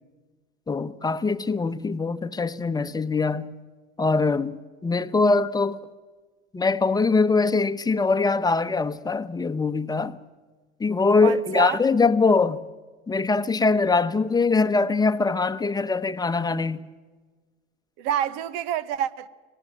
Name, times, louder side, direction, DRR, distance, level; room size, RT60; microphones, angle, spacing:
voice 1, 0.7-3.5 4.0-4.6 4.8-5.8 6.5-10.2 10.8-12.6 13.1-16.8, left 4 dB, 15° left, 1.0 m, -22 dB
voice 2, 11.2-11.8 18.0-19.3, right 10 dB, 65° right, 1.2 m, -27 dB
25.0 x 18.0 x 7.7 m
hypercardioid pair, 95°, 30 cm